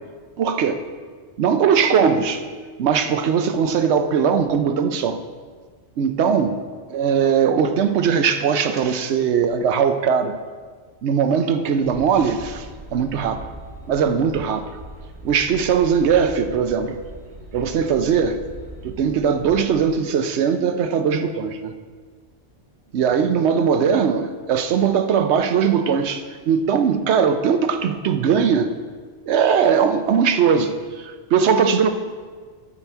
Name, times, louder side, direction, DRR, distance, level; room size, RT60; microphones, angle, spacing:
voice 1, 0.4-0.8 1.4-2.4 2.8-5.2 6.0-6.6 6.9-10.4 11.0-12.7 12.9-13.4 13.9-14.6 15.2-17.0 17.5-18.4 18.8-21.7 22.9-28.7 29.3-31.9, right 7 dB, 70° right, 8 dB, 0.9 m, -20 dB
sound 1, 11.8-19.9, right 1 dB, 45° right, 1.3 m, -40 dB
8.9 x 7.3 x 4.5 m, 1.5 s
omnidirectional pair, 1.2 m